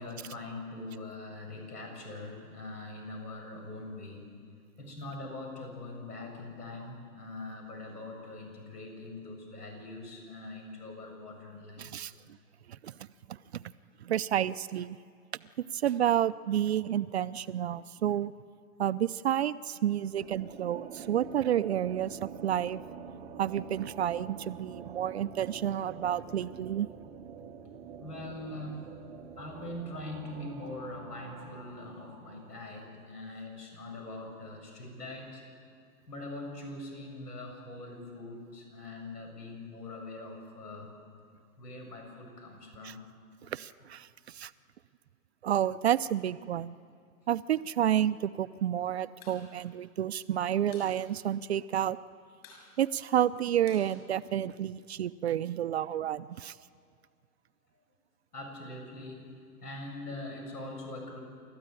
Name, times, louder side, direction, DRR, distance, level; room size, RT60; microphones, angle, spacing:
voice 1, 0.0-4.3 4.8-12.1 28.0-28.9 29.4-35.4 36.1-40.9 41.6-43.1 58.3-59.3 59.6-61.2, left 2 dB, 85° left, 3 dB, 7.9 m, -42 dB
voice 2, 11.8-12.1 12.8-12.9 13.5-13.6 14.0-15.0 15.7-18.3 18.8-22.8 23.4-26.9 42.8-42.9 43.5-44.5 45.4-46.8 47.3-52.0 52.8-56.5, right 10 dB, 45° right, 14 dB, 0.5 m, -30 dB
sound 1, 20.1-33.2, right 6 dB, 10° right, 0.8 m, -47 dB
sound 2, 49.2-49.4 49.7-49.8 50.1-50.9 51.3-51.4 51.6-52.0 52.4-54.7, left 5 dB, 25° left, 7.0 m, -54 dB
29.0 x 13.5 x 9.0 m, 2.2 s
hypercardioid pair, 150°, 46 cm